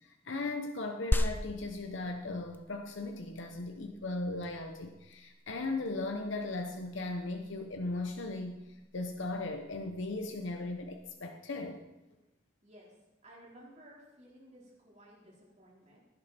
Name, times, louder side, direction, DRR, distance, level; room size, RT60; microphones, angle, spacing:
voice 1, 0.0-8.6 8.9-11.8, left 2 dB, 65° left, 4 dB, 0.9 m, -37 dB
sound 1, 1.1-11.1, left 1 dB, 10° left, 0.5 m, -39 dB
voice 2, 12.6-16.0, equal, 35° right, -5 dB, 4.3 m, -56 dB
16.5 x 9.8 x 4.4 m, 1.0 s
head